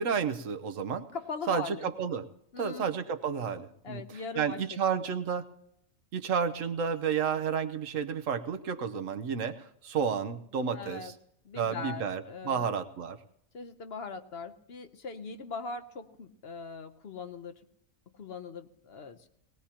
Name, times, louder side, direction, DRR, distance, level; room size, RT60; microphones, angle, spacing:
voice 1, 0.0-1.1 1.5-2.2 2.6-4.0 4.4-5.5 6.1-11.1 11.5-13.2, right 7 dB, 75° right, 9 dB, 1.3 m, -31 dB
voice 2, 1.1-1.9 2.5-2.9 3.8-4.6 4.9-5.1 10.7-11.1 11.4-12.7 13.5-17.6 18.1-19.3, left 4 dB, 55° left, 9 dB, 1.0 m, -40 dB
19.0 x 18.5 x 2.9 m, 0.73 s
omnidirectional pair, 1.4 m